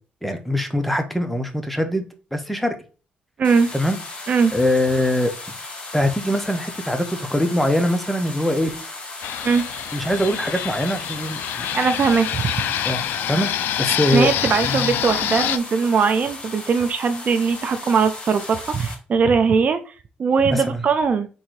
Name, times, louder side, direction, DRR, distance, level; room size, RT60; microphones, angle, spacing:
voice 1, 0.2-2.0 2.3-2.7 3.7-4.0 4.5-5.3 5.9-8.7 9.9-11.7 12.8-14.3 14.6-15.0 20.5-20.8, left 1 dB, 5° left, 7 dB, 0.8 m, -22 dB
sound 1, 3.4-18.9, left 2 dB, 35° left, 1.5 m, -36 dB
voice 2, 3.4-3.7 4.3-4.5 9.4-9.6 11.7-12.5 14.1-19.9 20.2-21.3, right 5 dB, 50° right, 9 dB, 0.5 m, -20 dB
Fixed-wing aircraft airplane, 9.2-15.6, left 10 dB, 80° left, 0.3 m, -26 dB
3.8 x 2.7 x 4.6 m, 0.35 s
cardioid pair, 80°, 3 cm